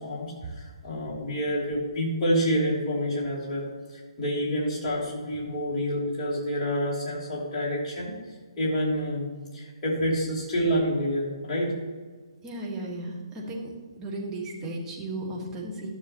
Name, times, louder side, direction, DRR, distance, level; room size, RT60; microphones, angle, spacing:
voice 1, 0.0-8.1 8.6-9.3 9.5-11.7, equal, 25° left, -6 dB, 2.9 m, -28 dB
voice 2, 12.4-13.7 14.0-15.9, right 1 dB, 15° right, -3 dB, 1.5 m, -35 dB
13.0 x 6.8 x 3.0 m, 1.5 s
figure-of-eight pair, 135°, 3 cm